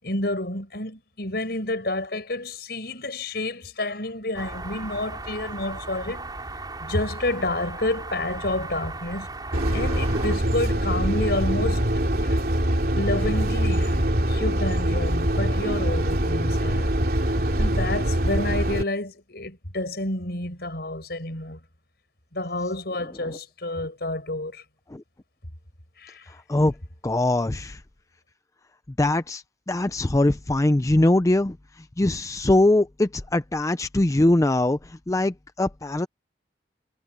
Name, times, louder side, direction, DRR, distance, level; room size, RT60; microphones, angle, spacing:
voice 1, 0.0-6.3 6.8-9.3 9.7-11.8 12.2-12.4 13.0-16.9 17.2-21.6 22.3-24.6 26.0-26.3, left 2 dB, 60° left, 6.4 m, -29 dB
sound 1, 4.3-10.4, right 2 dB, 25° right, 5.3 m, -36 dB
sound 2, 9.5-18.8, right 1 dB, 55° right, 2.9 m, -23 dB
voice 2, 26.3-26.7 27.0-27.8 29.0-36.1, left 1 dB, 20° left, 0.5 m, -22 dB
head